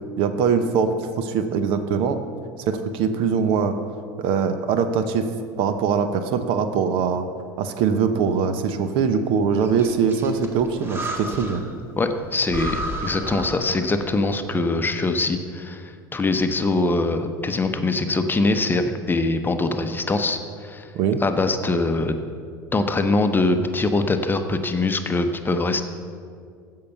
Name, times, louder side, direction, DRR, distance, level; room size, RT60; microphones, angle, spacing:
voice 1, 0.2-2.2 2.7-3.8 4.2-5.3 5.6-7.2 7.6-11.6 20.9-21.2, right 6 dB, 60° right, 9 dB, 0.8 m, -22 dB
Breathing, 9.6-11.8 12.1-12.2 12.5-14.2, right 1 dB, 20° right, 1.6 m, -32 dB
voice 2, 12.0-20.9 21.2-22.2 22.7-25.8, left 2 dB, 20° left, 7 dB, 0.9 m, -23 dB
15.0 x 5.7 x 5.5 m, 2.2 s
hypercardioid pair, 75°, 11 cm